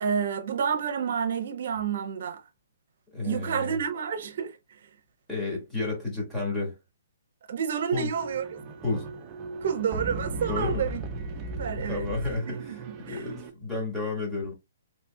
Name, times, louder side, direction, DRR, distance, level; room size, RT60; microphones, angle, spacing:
voice 1, 0.0-2.4 3.2-4.5 7.5-8.6 9.6-11.0 11.6-12.1 12.5-13.2, right 7 dB, 55° right, 1.0 m, -29 dB
voice 2, 3.1-3.8 5.3-6.8 7.9-8.1 8.8-9.1 10.5-10.8 11.7-14.5, left 3 dB, 5° left, 1.8 m, -31 dB
sound 1, 8.1-13.5, right 3 dB, 20° right, 0.6 m, -36 dB
4.2 x 3.4 x 2.3 m
hypercardioid pair, 165°, 0 cm